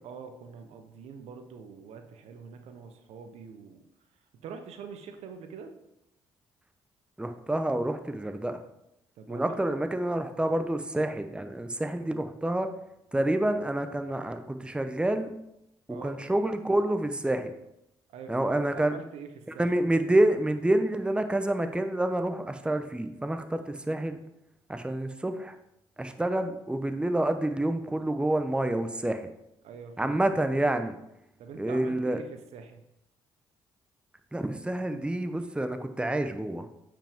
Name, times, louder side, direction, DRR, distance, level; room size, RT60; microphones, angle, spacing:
voice 1, 0.0-3.8 4.4-5.7 9.2-9.8 15.9-16.2 18.1-20.1 29.6-30.3 31.4-32.8, right 6 dB, 70° right, 7 dB, 0.9 m, -45 dB
voice 2, 7.2-8.6 9.3-12.7 13.1-15.3 15.9-17.5 18.3-18.9 19.6-24.2 24.7-25.6 26.0-29.3 30.0-31.0 31.6-32.2 34.3-36.7, right 1 dB, 10° right, 8 dB, 0.8 m, -28 dB
8.7 x 5.2 x 3.6 m, 0.83 s
hypercardioid pair, 50°, 11 cm